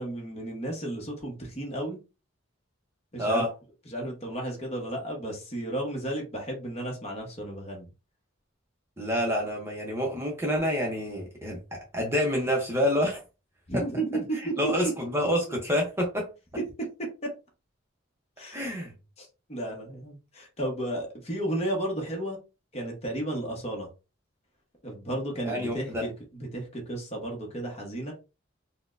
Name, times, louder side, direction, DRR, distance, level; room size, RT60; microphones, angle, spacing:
voice 1, 0.0-2.0 3.1-3.4 3.9-7.9 13.7-14.4 14.6-14.9 18.4-18.6 19.2-22.4 22.7-23.9 24.8-28.1, right 1 dB, 30° left, 0.9 m, -33 dB
voice 2, 3.2-3.5 9.0-13.2 13.7-13.8 14.3-16.3 18.5-18.9 25.5-26.1, equal, 10° right, 0.7 m, -28 dB
4.2 x 2.1 x 2.5 m
head